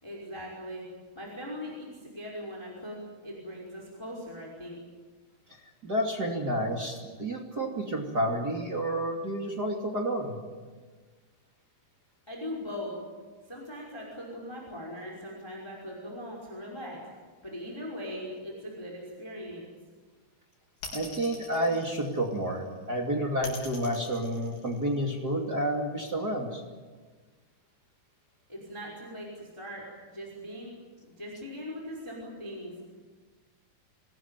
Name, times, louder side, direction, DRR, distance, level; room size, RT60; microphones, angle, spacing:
voice 1, 0.0-0.8 1.1-3.0 3.2-4.8 12.3-12.9 13.5-17.0 17.4-19.6 28.5-29.8 30.1-30.8 31.0-32.7, equal, 5° left, -2 dB, 5.0 m, -40 dB
voice 2, 5.8-10.4 20.9-26.6, right 1 dB, 30° right, 0 dB, 2.7 m, -30 dB
sound 1, 20.8-22.6 23.4-25.2, left 3 dB, 75° left, 6.6 m, -43 dB
26.5 x 19.5 x 9.2 m, 1.4 s
omnidirectional pair, 4.6 m